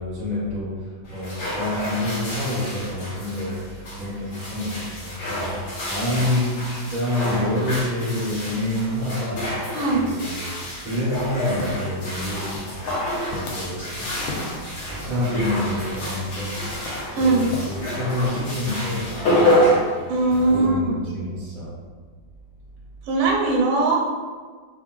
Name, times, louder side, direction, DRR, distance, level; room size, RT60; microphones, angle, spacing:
voice 1, 0.0-9.6 9.9-10.6 10.8-12.6 13.2-19.7 20.3-21.8, left 1 dB, 30° right, -8 dB, 0.6 m, -28 dB
sound 1, 1.1-20.7, equal, 60° left, 1.3 m, -28 dB
voice 2, 9.7-10.1 17.2-17.5 20.1-21.0 23.1-24.1, right 3 dB, 85° right, -1 dB, 1.4 m, -20 dB
sound 2, 11.1-18.4, left 2 dB, 80° left, 1.3 m, -38 dB
3.6 x 2.4 x 2.3 m, 1.5 s
omnidirectional pair, 2.1 m